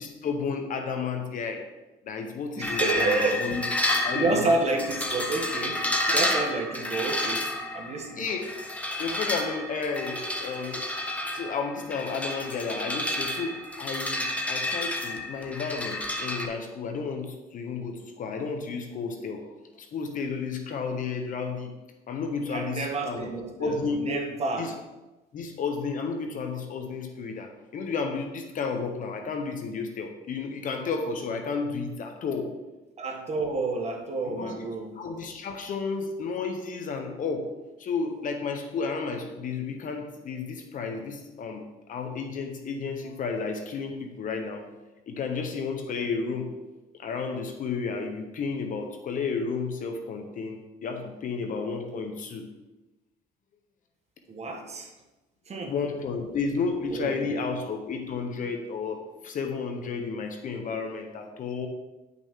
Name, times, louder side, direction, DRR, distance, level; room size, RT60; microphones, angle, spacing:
voice 1, 0.0-1.7 2.0-4.5 8.2-8.6 9.0-10.9 11.3-19.5 19.8-21.7 22.1-23.3 23.6-24.1 24.6-24.7 25.3-32.5 34.2-34.7 34.9-37.5 37.8-44.7 45.1-46.5 47.0-52.4 55.7-61.7, left 5 dB, 50° left, 5 dB, 1.0 m, -32 dB
sound 1, 2.6-16.5, left 1 dB, 10° left, 1.0 m, -30 dB
voice 2, 2.6-3.5 4.1-8.3 22.5-24.8 33.0-35.0 54.3-54.9 55.5-55.7 56.9-57.3, right 3 dB, 40° right, 2 dB, 1.5 m, -29 dB
9.9 x 6.1 x 3.7 m, 1.1 s
cardioid pair, 110°, 17 cm